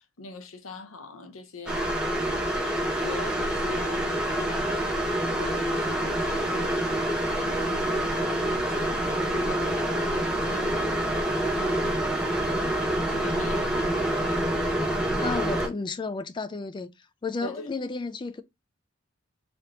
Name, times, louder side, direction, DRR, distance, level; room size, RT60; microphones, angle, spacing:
voice 1, 0.0-1.9 2.2-2.7 3.0-5.0 5.4-6.8 7.3-11.1 11.4-11.8 12.4-12.8 13.1-14.4 17.4-17.7, left 3 dB, 85° left, 0.8 m, -42 dB
sound 1, 1.7-15.7, right 1 dB, 5° right, 0.7 m, -27 dB
voice 2, 15.2-16.9 17.2-18.4, left 4 dB, 25° left, 0.3 m, -32 dB
3.7 x 3.4 x 2.8 m
head